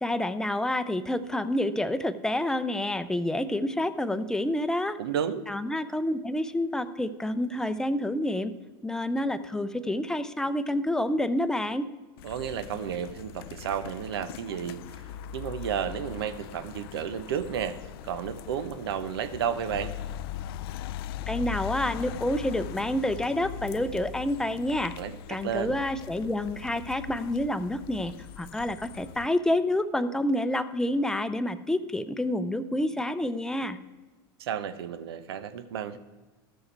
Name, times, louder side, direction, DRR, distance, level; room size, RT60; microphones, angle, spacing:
voice 1, 0.0-5.0 5.5-8.5 8.8-11.9 21.3-24.9 25.3-33.8, left 1 dB, 5° left, 11 dB, 0.6 m, -28 dB
voice 2, 5.0-5.4 12.2-14.8 15.3-17.8 18.0-19.9 25.0-25.8 34.4-36.0, right 8 dB, 85° right, 12 dB, 0.8 m, -32 dB
sound 1, 12.2-29.3, left 11 dB, 75° left, 0.4 m, -40 dB
13.5 x 6.4 x 4.5 m, 1.3 s
hypercardioid pair, 105°, 13 cm